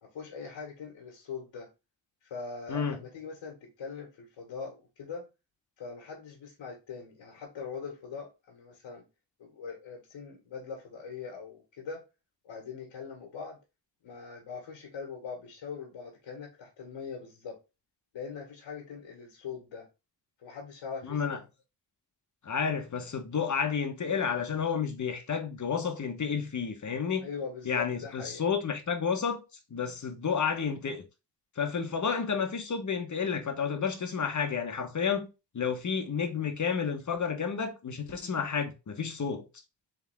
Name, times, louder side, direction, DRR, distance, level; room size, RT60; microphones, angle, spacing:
voice 1, 0.0-1.7 2.2-5.2 5.8-9.0 9.4-12.0 12.4-13.6 14.0-17.6 18.1-19.9 20.4-21.4 27.2-28.4, left 5 dB, 80° left, 1.6 m, -42 dB
voice 2, 2.7-3.0 21.0-21.4 22.4-27.3 27.6-29.4 29.7-31.0 31.6-35.3 35.5-39.5, left 6 dB, 40° left, 1.1 m, -31 dB
3.7 x 3.5 x 3.5 m
cardioid pair, 65°, 44 cm